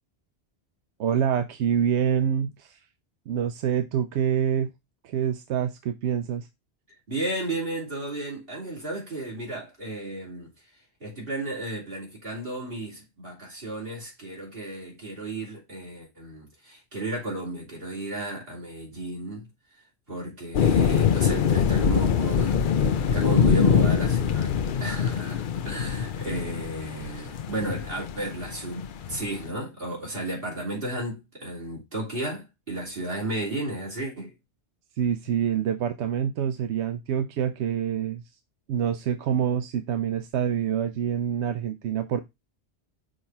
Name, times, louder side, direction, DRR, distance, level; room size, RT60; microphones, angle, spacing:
voice 1, 1.0-2.8 3.3-4.7 5.0-6.5 35.0-38.2 38.7-42.2, right 8 dB, 90° right, 0.9 m, -26 dB
voice 2, 7.1-10.7 11.0-19.5 20.1-34.3, right 1 dB, 55° right, 3.4 m, -33 dB
sound 1, 20.5-29.4, left 7 dB, 55° left, 0.7 m, -24 dB
6.4 x 3.0 x 5.4 m
omnidirectional pair, 1.1 m